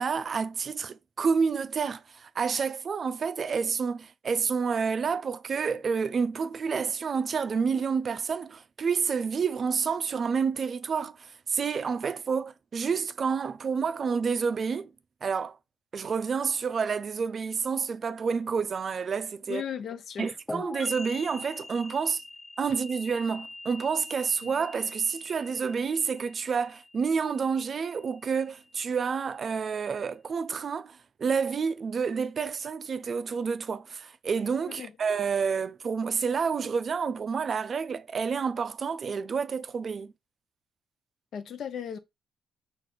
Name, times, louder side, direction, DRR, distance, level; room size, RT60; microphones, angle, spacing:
voice 1, 0.0-14.9 15.2-15.6 15.9-19.6 20.2-22.2 22.6-40.1, right 5 dB, 45° right, 0.4 m, -29 dB
voice 2, 19.5-20.4 24.4-24.5 34.8-34.9 41.3-42.0, left 8 dB, 65° left, 0.6 m, -36 dB
sound 1, 20.5-28.0, left 2 dB, 10° left, 0.6 m, -43 dB
4.8 x 2.5 x 4.3 m
cardioid pair, 90°, 0 cm